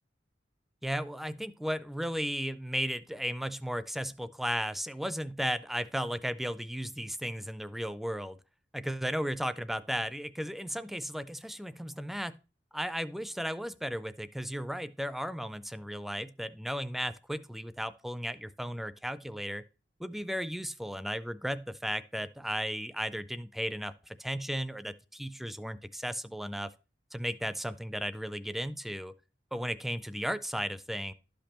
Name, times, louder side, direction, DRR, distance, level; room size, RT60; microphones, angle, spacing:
voice 1, 0.8-8.4 8.7-12.4 12.7-19.6 20.0-26.7 27.1-29.1 29.5-31.1, equal, ahead, 0.3 m, -35 dB
12.0 x 5.2 x 2.9 m
head